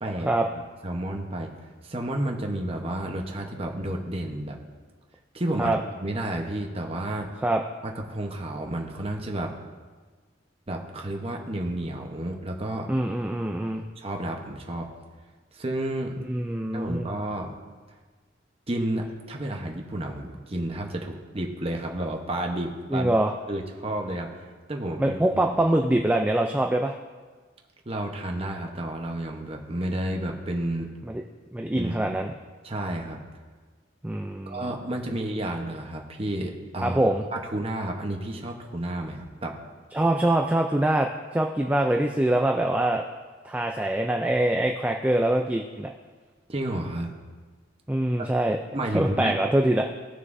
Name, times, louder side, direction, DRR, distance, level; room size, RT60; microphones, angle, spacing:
voice 1, 0.0-1.5 1.8-4.6 5.3-7.3 7.8-9.5 10.7-12.9 14.0-14.9 15.5-16.2 16.7-17.5 18.7-23.1 23.5-25.4 27.9-30.9 31.7-32.2 32.6-33.2 34.5-39.5 46.5-47.1 48.2-48.3 48.7-49.4, right 1 dB, 30° right, 1 dB, 1.0 m, -31 dB
voice 2, 12.9-13.9 16.3-17.1 22.9-23.3 25.0-27.0 31.0-31.1 31.5-32.3 34.0-34.7 36.8-37.2 39.9-41.1 41.3-43.0 43.4-45.9 47.9-48.6 48.9-49.8, right 1 dB, 10° right, 3 dB, 0.3 m, -24 dB
17.0 x 6.5 x 2.6 m, 1.4 s
head